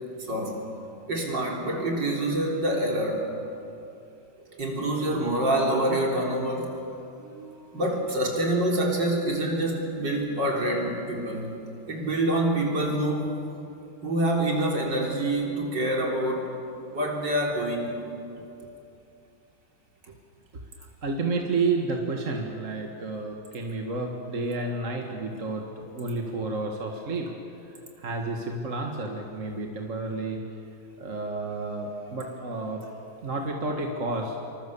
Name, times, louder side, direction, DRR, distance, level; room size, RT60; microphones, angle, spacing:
voice 1, 0.2-0.6 1.1-3.3 4.6-11.5 11.9-13.4 14.0-16.5 16.9-17.9, right 1 dB, 60° right, -1 dB, 4.5 m, -26 dB
voice 2, 4.5-4.8 20.1-20.2 20.5-20.6 21.0-27.3 27.7-30.4 31.0-32.8 33.2-34.5, right 3 dB, 40° right, 2 dB, 2.1 m, -31 dB
27.0 x 24.5 x 7.2 m, 2.8 s
omnidirectional pair, 2.2 m